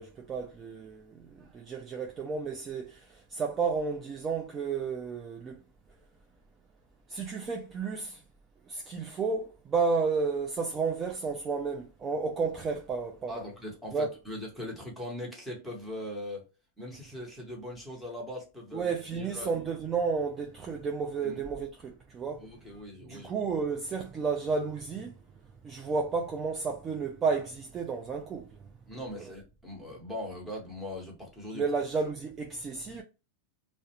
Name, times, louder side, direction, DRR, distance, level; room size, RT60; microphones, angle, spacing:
voice 1, 0.0-5.6 7.1-8.2 8.7-13.4 13.9-14.1 18.7-22.5 23.1-25.1 25.6-28.6 29.2-29.3 31.5-33.0, right 5 dB, 25° right, 0.4 m, -32 dB
voice 2, 13.3-16.4 16.8-19.5 21.2-21.4 22.4-23.3 28.9-31.6, left 1 dB, ahead, 1.1 m, -40 dB
2.3 x 2.1 x 2.8 m
supercardioid pair, 135°, 0 cm